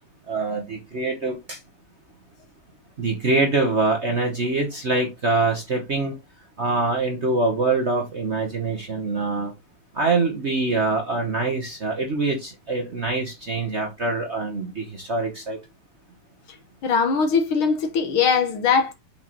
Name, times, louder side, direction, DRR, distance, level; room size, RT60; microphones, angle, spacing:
voice 1, 0.3-1.6 3.0-6.1 6.6-9.5 9.9-15.6, right 3 dB, 40° right, 1.1 m, -24 dB
voice 2, 16.8-18.9, left 5 dB, 75° left, 2.1 m, -21 dB
8.0 x 4.9 x 3.0 m
omnidirectional pair, 2.4 m